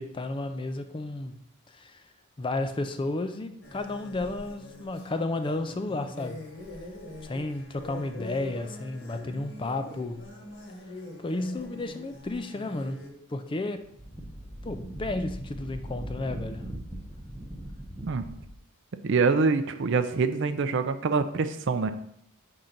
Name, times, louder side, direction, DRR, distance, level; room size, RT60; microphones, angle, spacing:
voice 1, 0.0-1.4 1.7-2.0 2.4-6.4 7.2-10.3 11.2-13.0 13.3-13.8 14.6-16.7, left 2 dB, 25° left, 8 dB, 0.4 m, -32 dB
sound 1, 3.6-13.1, left 2 dB, 55° left, 1.4 m, -44 dB
Wind, 13.7-18.6, right 1 dB, 5° right, 0.7 m, -40 dB
voice 2, 19.0-21.9, right 4 dB, 55° right, 10 dB, 0.4 m, -25 dB
5.3 x 3.8 x 5.9 m, 0.73 s
head